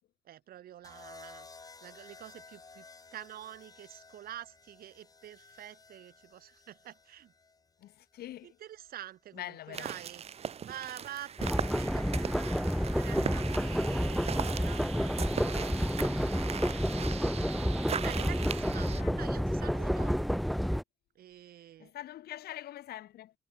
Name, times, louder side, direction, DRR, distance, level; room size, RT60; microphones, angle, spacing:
voice 1, 0.2-1.5 1.8-2.9 3.1-7.3 8.4-10.2 10.5-18.9 19.2-20.1 21.1-21.9, right 12 dB, 60° right, 6.4 m, -48 dB
sound 1, 0.8-9.0 10.2-10.6, left 4 dB, 20° left, 2.3 m, -55 dB
voice 2, 7.8-8.6 9.3-10.0 18.7-19.2 21.8-23.3, left 13 dB, 65° left, 5.1 m, -44 dB
sound 2, 9.7-19.0, right 8 dB, 40° right, 0.9 m, -39 dB
sound 3, 11.4-20.8, equal, ahead, 0.4 m, -30 dB
cardioid pair, 110°, 17 cm